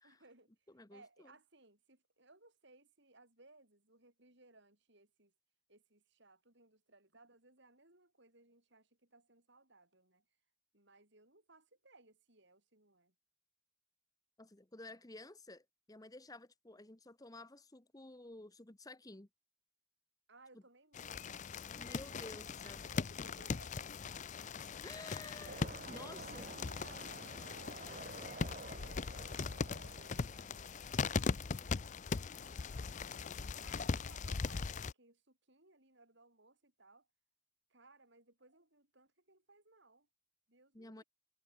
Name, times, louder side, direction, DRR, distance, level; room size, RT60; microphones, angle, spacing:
voice 1, 0.0-5.3 5.7-10.2 10.7-13.1 20.3-21.3 22.1-23.8 24.9-25.0 25.8-37.1 37.7-40.1 40.5-41.0, right 2 dB, 55° right, 6.4 m, -64 dB
voice 2, 14.4-19.3 21.8-22.8 24.8-26.5 40.7-41.0, left 2 dB, 15° left, 1.0 m, -52 dB
sound 1, 20.9-34.9, left 4 dB, 35° left, 0.5 m, -40 dB
sound 2, 25.4-31.4, right 3 dB, 40° right, 3.2 m, -52 dB
head